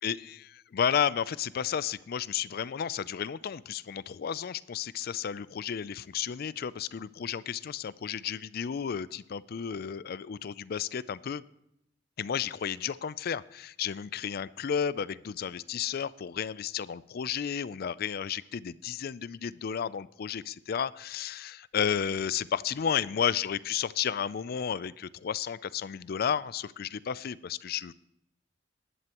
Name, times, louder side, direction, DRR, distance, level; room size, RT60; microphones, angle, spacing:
voice 1, 0.0-11.4 12.2-27.9, left 8 dB, 55° left, 18 dB, 0.4 m, -32 dB
19.0 x 11.0 x 3.0 m, 0.78 s
head